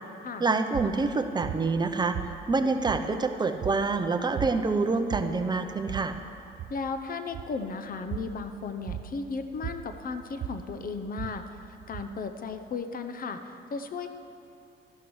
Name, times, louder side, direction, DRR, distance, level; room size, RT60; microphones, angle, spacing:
voice 1, 0.4-2.2 2.5-6.2, right 3 dB, 20° right, 6 dB, 0.7 m, -26 dB
sound 1, 0.7-12.7, right 11 dB, 55° right, 0.4 m, -40 dB
voice 2, 6.7-14.1, left 4 dB, 45° left, 8 dB, 0.7 m, -35 dB
12.5 x 11.5 x 3.2 m, 2.8 s
cardioid pair, 90°, 20 cm